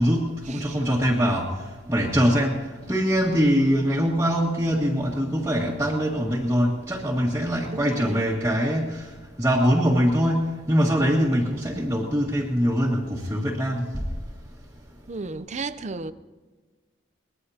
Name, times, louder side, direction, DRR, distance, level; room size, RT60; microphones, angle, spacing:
voice 1, 0.0-1.5 1.9-2.6 2.9-9.1 9.4-14.0, equal, 15° right, 1.8 m, -23 dB
voice 2, 7.7-8.3 15.1-16.1, right 3 dB, 40° right, 0.6 m, -34 dB
23.0 x 20.5 x 2.9 m
head